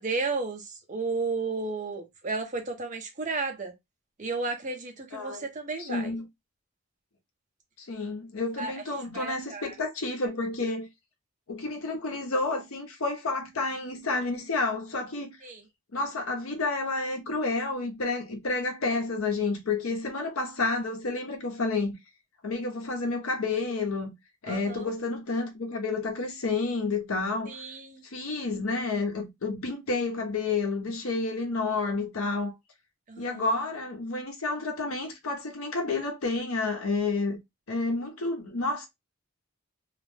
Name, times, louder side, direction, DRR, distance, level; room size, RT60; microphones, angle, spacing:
voice 1, 0.0-3.7 4.2-6.1 8.6-8.8 9.1-9.7 15.4-15.6 24.5-24.9 27.5-28.0 33.1-33.4, right 3 dB, 35° right, 0.7 m, -33 dB
voice 2, 5.1-5.5 5.8-6.2 7.8-10.9 11.5-15.4 15.9-21.9 22.4-24.1 24.4-27.6 28.0-32.6 33.2-37.4 37.7-38.9, left 3 dB, 75° left, 0.8 m, -30 dB
2.4 x 2.1 x 3.2 m
head